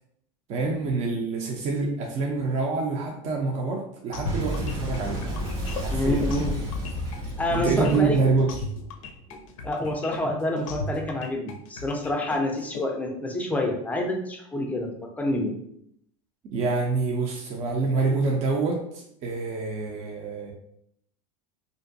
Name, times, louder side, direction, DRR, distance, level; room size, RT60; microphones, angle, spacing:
voice 1, 0.5-5.2 5.8-6.6 7.5-8.5 16.4-20.5, right 4 dB, 45° right, -1 dB, 0.5 m, -26 dB
sound 1, 4.1-12.8, left 2 dB, 80° left, 0.4 m, -36 dB
Boom, 4.3-9.5, equal, 75° right, 1.0 m, -31 dB
voice 2, 5.9-6.6 7.4-8.2 9.3-9.4 9.6-15.5, left 1 dB, 10° left, 2 dB, 0.5 m, -27 dB
2.5 x 2.2 x 2.6 m, 0.71 s
hypercardioid pair, 105°, 17 cm